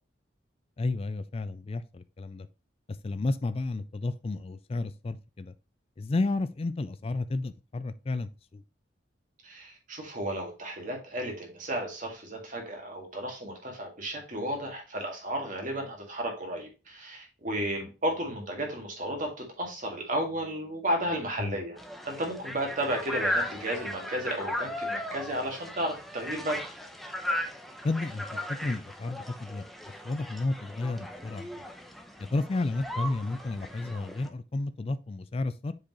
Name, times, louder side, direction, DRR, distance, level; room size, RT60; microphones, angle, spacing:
voice 1, 0.8-2.5 3.0-5.5 6.0-8.6 17.6-17.7 21.4-21.6 27.8-29.7 30.0-31.5 32.2-35.7, left 2 dB, 30° left, 0.4 m, -32 dB
voice 2, 9.4-21.8 22.0-26.6, right 1 dB, 45° right, 2.0 m, -33 dB
sound 1, 21.8-34.3, left 1 dB, ahead, 0.7 m, -37 dB
7.2 x 4.8 x 3.0 m
head